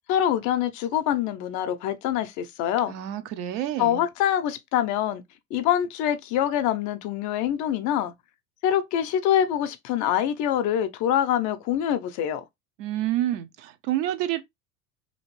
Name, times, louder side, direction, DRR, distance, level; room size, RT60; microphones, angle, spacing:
voice 1, 0.1-2.9 3.8-5.2 5.5-8.1 8.6-12.4, left 10 dB, 45° left, 0.5 m, -25 dB
voice 2, 2.9-4.0 12.8-14.4, right 13 dB, 60° right, 0.6 m, -28 dB
2.8 x 2.5 x 3.0 m
hypercardioid pair, 85°, 44 cm